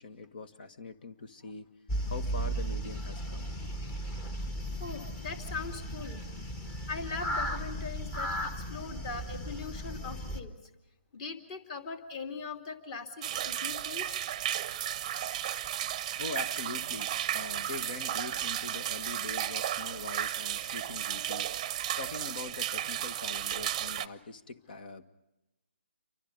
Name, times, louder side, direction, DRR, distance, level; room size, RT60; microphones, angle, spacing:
voice 1, 0.0-1.7 2.1-3.5 16.2-21.5 22.0-25.0, left 3 dB, 50° left, 10 dB, 1.8 m, -43 dB
sound 1, 1.9-10.4, equal, 15° left, 1.6 m, -36 dB
voice 2, 4.8-6.2 6.9-10.6 11.1-14.2 15.7-15.8, left 4 dB, 30° left, 6 dB, 2.8 m, -41 dB
sound 2, 13.2-24.1, right 11 dB, 30° right, 0.8 m, -34 dB
29.0 x 24.5 x 5.4 m, 0.97 s
figure-of-eight pair, 150°, 6 cm